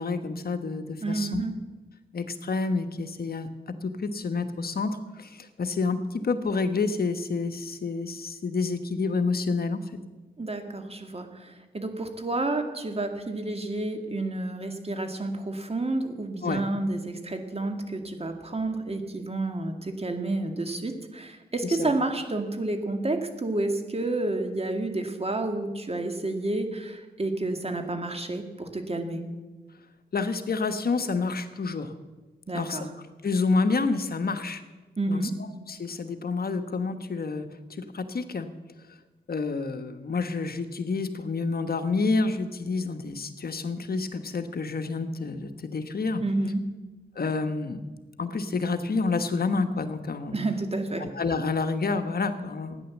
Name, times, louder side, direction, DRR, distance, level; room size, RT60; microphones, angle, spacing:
voice 1, 0.0-1.4 2.1-3.5 3.8-9.8 16.4-16.6 21.6-21.9 30.1-31.9 32.5-32.9 33.2-34.6 35.1-38.5 38.9-39.0 39.3-46.2 47.1-47.8 48.2-50.4 51.0-52.8, left 4 dB, 60° left, 8 dB, 1.2 m, -29 dB
voice 2, 1.0-1.5 10.4-29.2 32.5-32.9 35.0-35.4 46.2-46.6 50.3-51.1, right 2 dB, 35° right, 5 dB, 2.2 m, -30 dB
14.0 x 9.9 x 7.3 m, 1.2 s
cardioid pair, 60°, 17 cm